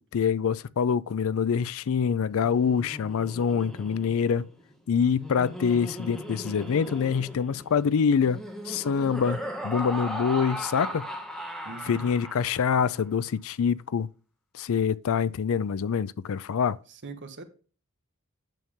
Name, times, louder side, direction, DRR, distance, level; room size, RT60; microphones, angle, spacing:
voice 1, 0.0-4.5 4.9-11.1 11.8-14.1 14.5-16.8, left 6 dB, 65° left, 0.4 m, -25 dB
Laughter, 2.3-12.8, equal, ahead, 1.4 m, -38 dB
voice 2, 11.6-12.0 16.9-17.4, right 3 dB, 55° right, 1.4 m, -42 dB
9.2 x 7.0 x 3.6 m
head